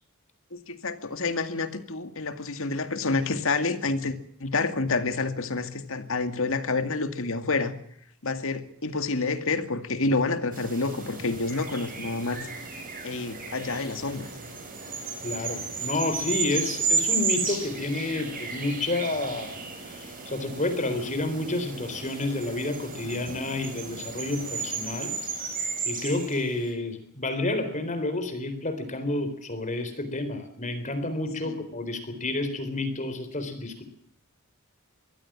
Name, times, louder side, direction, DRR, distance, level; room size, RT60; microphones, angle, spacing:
voice 1, 0.5-4.1 4.4-7.7 8.2-12.5 13.0-14.3 31.4-31.6, left 3 dB, 65° left, 9 dB, 2.2 m, -28 dB
sound 1, 10.5-26.7, right 4 dB, 40° right, 7.9 m, -33 dB
voice 2, 15.2-25.1 25.8-33.8, left 2 dB, 35° left, 10 dB, 3.8 m, -30 dB
23.5 x 16.0 x 7.5 m, 0.67 s
head